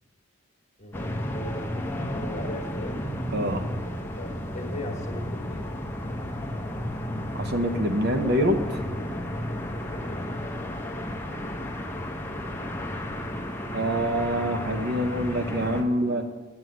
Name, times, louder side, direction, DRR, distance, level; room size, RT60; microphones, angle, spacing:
voice 1, 0.8-3.0 4.2-5.7 9.9-10.3, left 1 dB, 35° left, 1 dB, 1.5 m, -39 dB
sound 1, 0.9-15.8, left 1 dB, 10° left, 0.7 m, -33 dB
voice 2, 3.3-3.7 7.3-8.8 13.7-16.3, equal, 50° right, 6 dB, 0.8 m, -25 dB
7.7 x 7.0 x 7.7 m, 1.3 s
head